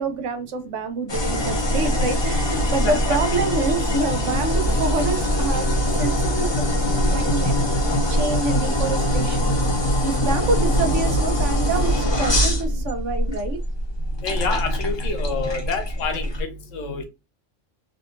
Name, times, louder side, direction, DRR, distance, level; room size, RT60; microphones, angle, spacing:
voice 1, 0.0-5.7 6.0-6.7 7.1-7.6 8.1-9.5 10.0-13.6, right 3 dB, 75° right, 1.0 m, -27 dB
sound 1, 1.1-16.4, equal, 30° left, 0.5 m, -22 dB
voice 2, 14.2-17.0, left 4 dB, 85° left, 1.1 m, -28 dB
3.6 x 2.6 x 2.4 m
omnidirectional pair, 1.3 m